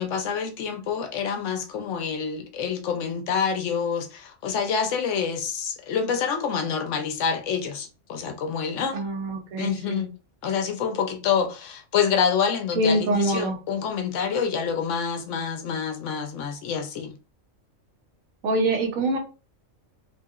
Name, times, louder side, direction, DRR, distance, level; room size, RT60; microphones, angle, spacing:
voice 1, 0.0-9.0 9.6-10.1 10.4-17.1, left 6 dB, 70° left, 0.9 m, -27 dB
voice 2, 8.9-10.1 12.7-13.6 18.4-19.2, right 2 dB, 85° right, 1.2 m, -24 dB
3.0 x 2.7 x 2.4 m
omnidirectional pair, 1.4 m